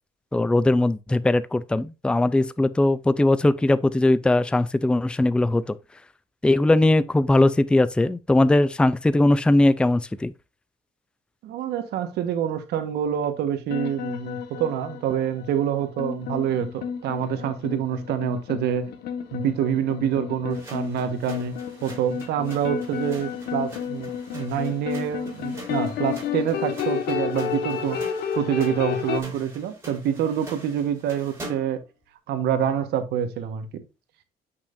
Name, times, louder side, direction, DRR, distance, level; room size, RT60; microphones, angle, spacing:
voice 1, 0.3-5.8 6.4-10.3, left 2 dB, 5° left, 0.4 m, -20 dB
voice 2, 11.4-18.9 19.3-21.5 21.8-28.0 28.3-31.8 32.3-33.8, right 9 dB, 75° right, 1.4 m, -26 dB
sound 1, 13.7-29.2, left 8 dB, 75° left, 1.6 m, -31 dB
sound 2, 20.5-31.8, right 1 dB, 15° right, 4.5 m, -45 dB
8.8 x 5.9 x 2.6 m
cardioid pair, 110°, 17 cm